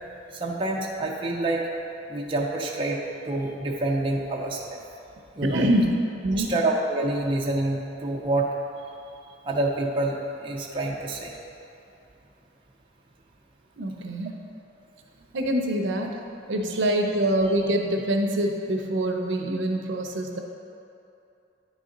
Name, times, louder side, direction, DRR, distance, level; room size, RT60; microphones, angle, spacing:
voice 1, 0.4-1.7 2.1-3.0 3.3-4.8 5.4-5.7 6.3-8.5 9.5-10.2 10.4-11.3 16.7-16.8, right 2 dB, 25° right, -2 dB, 0.5 m, -27 dB
voice 2, 5.4-5.9 6.2-6.5 13.8-14.3 15.3-16.2 16.5-20.4, right 1 dB, 70° right, 2 dB, 0.6 m, -25 dB
9.5 x 4.1 x 3.8 m, 2.8 s
head